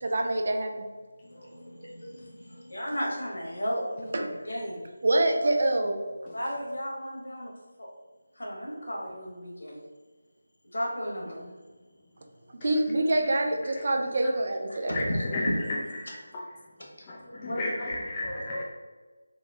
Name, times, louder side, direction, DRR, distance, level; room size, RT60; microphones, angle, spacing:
voice 1, 0.0-0.8 4.1-4.4 5.0-6.0 12.6-14.9, right 1 dB, 45° right, 4 dB, 0.4 m, -26 dB
voice 2, 1.2-4.8 6.3-7.5 7.8-7.9 8.3-9.8 10.7-11.4 14.7-15.5 17.2-17.6 17.9-18.5, equal, 65° left, -2 dB, 1.3 m, -34 dB
voice 3, 14.8-16.4 17.1-18.6, left 2 dB, 20° left, -5 dB, 0.4 m, -34 dB
3.8 x 2.8 x 3.3 m, 1.3 s
figure-of-eight pair, 160°, 0 cm